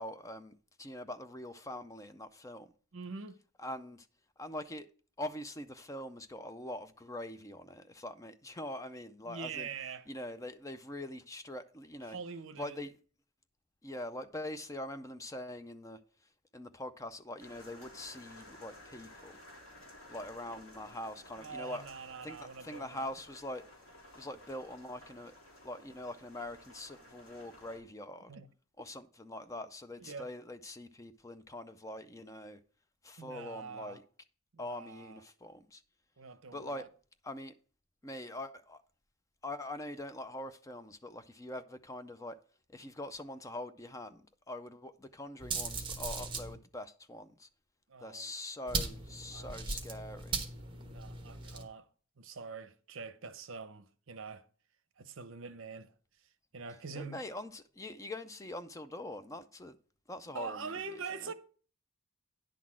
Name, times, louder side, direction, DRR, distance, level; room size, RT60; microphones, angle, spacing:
voice 1, 0.0-2.7 3.6-4.1 4.4-4.9 5.2-9.7 10.1-12.2 12.6-12.9 13.8-16.0 16.5-19.4 20.1-21.9 22.2-23.6 24.2-25.3 25.6-28.3 28.8-32.6 33.0-34.0 34.6-35.8 36.5-36.9 37.2-37.5 38.0-38.8 39.4-42.4 42.7-47.5 48.0-50.4 57.0-59.8 60.1-61.3, left 1 dB, 15° left, 0.4 m, -43 dB
voice 2, 2.9-3.4 9.3-10.1 12.1-12.8 21.4-23.1 28.3-28.5 30.0-30.3 33.2-34.0 34.5-35.2 36.2-36.9 47.9-48.3 49.3-49.5 50.8-51.9 52.2-54.4 55.0-55.9 56.5-57.2 60.3-61.3, right 5 dB, 60° right, 0.7 m, -44 dB
sound 1, 17.4-27.8, left 1 dB, 75° left, 3.3 m, -55 dB
sound 2, 45.4-46.5 48.7-51.6, right 4 dB, 25° right, 1.2 m, -38 dB
10.0 x 4.0 x 7.4 m
head